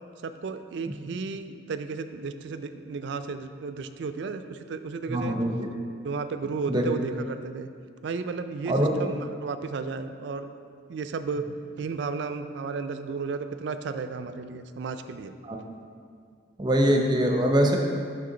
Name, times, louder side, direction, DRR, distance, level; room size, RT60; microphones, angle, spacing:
voice 1, 0.2-5.4 6.0-7.7 8.0-9.1 9.4-10.5 10.9-11.4 11.8-15.3, right 4 dB, 60° right, 10 dB, 0.3 m, -33 dB
voice 2, 5.1-5.7 6.7-6.8 8.7-8.9 15.4-15.6 16.6-17.8, equal, 20° right, 1 dB, 0.6 m, -23 dB
6.8 x 5.7 x 3.8 m, 2.2 s
head